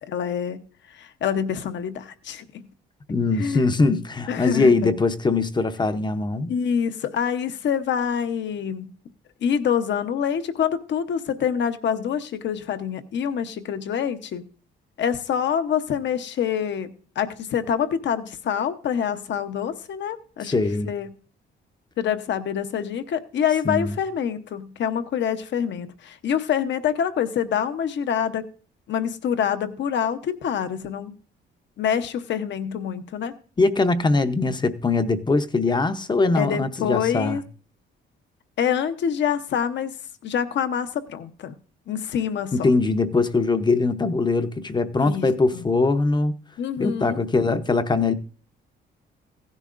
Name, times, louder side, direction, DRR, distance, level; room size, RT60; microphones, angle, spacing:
voice 1, 0.0-0.6 0.9-2.7 3.4-3.6 4.3-4.9 6.5-8.9 9.4-14.4 15.0-20.5 20.8-21.1 22.0-28.5 28.9-31.1 31.8-33.4 36.3-37.4 38.6-39.9 40.2-41.5 41.9-42.7 45.0-45.7 46.6-47.2, left 8 dB, 65° left, 0.9 m, -26 dB
voice 2, 3.1-6.5 20.4-20.9 23.6-24.0 33.6-37.4 42.5-46.3 46.8-48.1, left 3 dB, 20° left, 0.7 m, -22 dB
15.5 x 10.5 x 2.5 m
cardioid pair, 90°, 20 cm